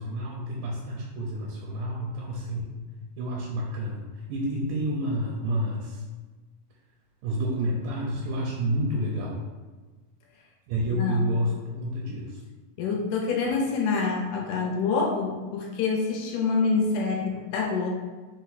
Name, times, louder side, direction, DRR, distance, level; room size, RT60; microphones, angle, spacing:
voice 1, 0.0-2.8 3.2-6.0 7.2-9.4 10.7-12.4, equal, 85° right, -3 dB, 2.2 m, -29 dB
voice 2, 10.9-11.2 12.8-17.9, left 4 dB, 80° left, 0 dB, 2.0 m, -26 dB
5.4 x 2.1 x 4.0 m, 1.3 s
omnidirectional pair, 3.9 m